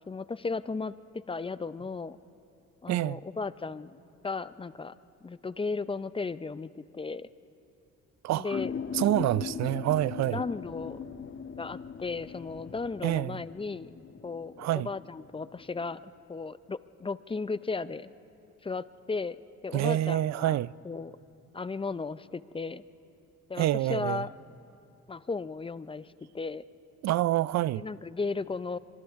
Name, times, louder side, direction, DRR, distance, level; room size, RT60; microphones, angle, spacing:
voice 1, 0.1-2.2 2.8-4.0 4.2-4.9 5.2-7.3 8.3-8.7 10.3-11.2 11.6-13.9 14.2-16.0 16.3-18.1 18.6-19.4 19.6-20.6 20.8-21.1 21.5-22.8 23.5-24.3 25.1-26.6 27.7-28.8, left 4 dB, 20° left, 0.5 m, -35 dB
voice 2, 2.9-3.2 8.2-8.6 8.9-10.4 13.0-13.4 14.6-14.9 19.7-20.7 23.6-24.2 27.0-27.8, right 14 dB, 60° right, 0.4 m, -27 dB
sound 1, 8.5-16.0, left 6 dB, 40° left, 1.0 m, -40 dB
29.0 x 25.5 x 3.6 m
cardioid pair, 90°, 30 cm